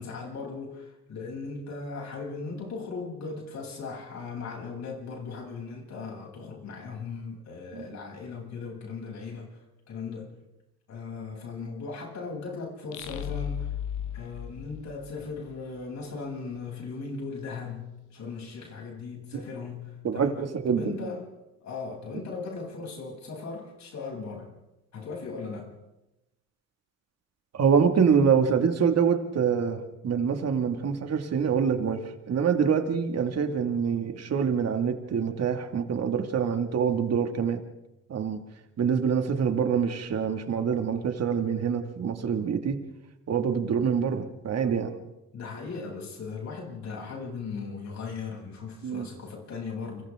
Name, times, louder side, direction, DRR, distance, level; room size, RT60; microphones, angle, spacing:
voice 1, 0.0-10.3 10.9-13.7 14.1-20.4 20.7-21.3 21.6-24.5 24.9-25.7 45.3-50.0, left 4 dB, 65° left, -1 dB, 7.8 m, -38 dB
sound 1, 12.9-15.6, left 10 dB, 80° left, 1.1 m, -35 dB
voice 2, 20.0-21.1 27.5-37.6 38.1-38.4 38.8-42.8 43.3-44.9 48.8-49.1, right 6 dB, 55° right, 6 dB, 2.2 m, -25 dB
30.0 x 25.0 x 3.7 m, 0.95 s
cardioid pair, 90°, 30 cm